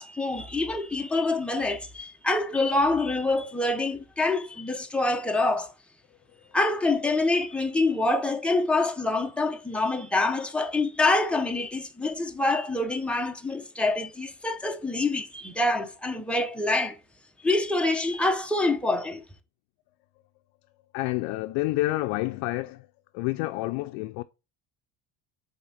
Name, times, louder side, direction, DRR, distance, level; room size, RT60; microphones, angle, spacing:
voice 1, 0.0-5.7 6.5-17.0 17.4-19.2, left 2 dB, 5° left, 0.7 m, -26 dB
voice 2, 20.9-22.9 23.1-24.2, left 19 dB, 85° left, 0.5 m, -28 dB
4.9 x 3.5 x 5.6 m
cardioid pair, 130°, 42 cm